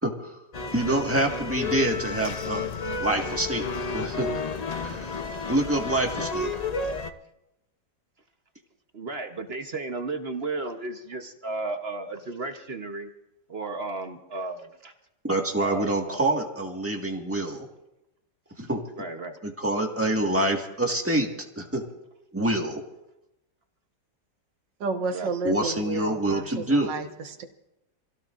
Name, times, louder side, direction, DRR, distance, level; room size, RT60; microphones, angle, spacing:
voice 1, 0.0-0.3 0.7-2.6 3.0-3.6 3.9-4.4 4.8-5.2 5.5-6.5 15.3-17.6 18.6-18.8 19.4-21.3 21.5-21.8 22.3-22.8 25.4-26.9, right 1 dB, 10° right, 1 dB, 1.5 m, -26 dB
sound 1, 0.5-7.1, left 4 dB, 60° left, 0.4 m, -31 dB
voice 2, 8.9-13.1 13.5-14.9 15.6-16.2 19.0-19.4 25.1-25.5, right 3 dB, 40° right, 5 dB, 1.0 m, -34 dB
voice 3, 24.8-27.4, right 4 dB, 80° right, 6 dB, 2.0 m, -31 dB
27.5 x 16.5 x 2.5 m, 0.90 s
omnidirectional pair, 1.9 m